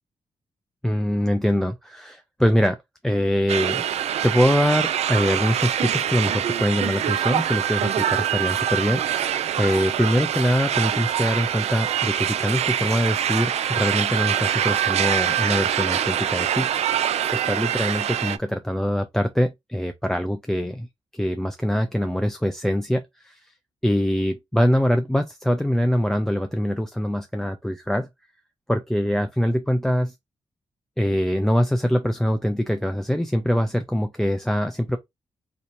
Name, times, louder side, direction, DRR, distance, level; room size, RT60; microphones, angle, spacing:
voice 1, 0.8-2.8 3.0-3.8 4.2-16.7 17.3-20.9 21.1-23.4 23.8-28.1 28.7-30.1 31.0-35.0, equal, 5° left, 0.4 m, -23 dB
sound 1, 3.5-18.4, right 10 dB, 70° right, 0.4 m, -24 dB
4.4 x 2.8 x 2.5 m
wide cardioid pair, 165°, 11 cm